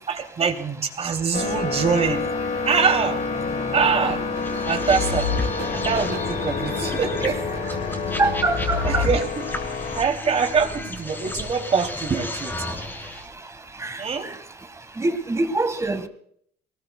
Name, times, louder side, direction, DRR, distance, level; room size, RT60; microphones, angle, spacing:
voice 1, 0.1-2.2 2.7-3.3 3.7-4.2 4.7-5.3 5.7-7.4 8.8-9.4 9.9-12.7 14.0-14.3, right 5 dB, 40° right, 2.8 m, -24 dB
sound 1, 1.3-10.0, left 4 dB, 55° left, 2.0 m, -28 dB
sound 2, 3.5-9.1, right 7 dB, 80° right, 3.4 m, -42 dB
sound 3, 4.4-13.2, left 3 dB, 15° left, 3.4 m, -31 dB
voice 2, 8.2-9.1 13.8-14.0 15.0-16.1, right 2 dB, 15° right, 1.6 m, -24 dB
23.5 x 20.0 x 2.3 m
cardioid pair, 110°, 17 cm